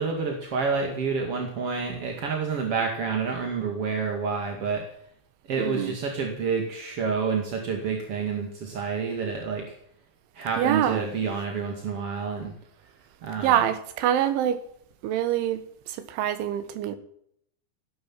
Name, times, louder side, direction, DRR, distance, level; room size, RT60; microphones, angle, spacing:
voice 1, 0.0-4.8 5.5-9.7 10.3-12.5 13.2-13.6, right 5 dB, 40° right, 2 dB, 2.2 m, -28 dB
voice 2, 5.6-5.9 10.6-11.1 13.4-14.6 15.0-17.0, right 10 dB, 75° right, 10 dB, 3.7 m, -25 dB
16.5 x 11.5 x 7.5 m, 0.69 s
omnidirectional pair, 5.7 m